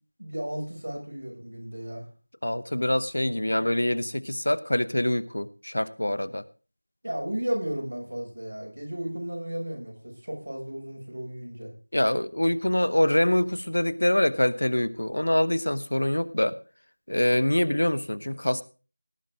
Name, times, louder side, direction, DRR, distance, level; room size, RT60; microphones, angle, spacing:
voice 1, 0.2-2.1 7.0-11.7, right 1 dB, 75° right, 0 dB, 6.7 m, -34 dB
voice 2, 2.4-6.4 11.9-16.6 17.1-18.6, left 1 dB, 75° left, 16 dB, 0.9 m, -25 dB
17.5 x 9.1 x 3.8 m, 0.34 s
figure-of-eight pair, 180°, 0 cm